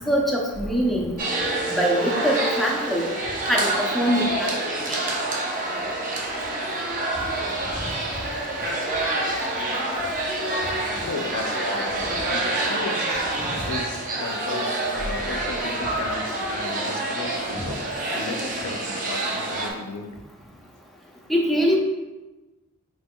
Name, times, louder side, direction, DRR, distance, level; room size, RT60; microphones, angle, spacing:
voice 1, 0.1-1.1 1.7-3.1 3.5-4.5 4.9-5.0 17.5-17.7 21.3-21.8, equal, ahead, -2 dB, 0.6 m, -23 dB
sound 1, 1.2-19.7, right 2 dB, 40° right, 0.7 m, -27 dB
voice 2, 11.1-13.3 13.7-17.9 18.1-20.2, left 3 dB, 70° left, 6 dB, 0.4 m, -35 dB
4.6 x 4.4 x 2.2 m, 1.1 s
head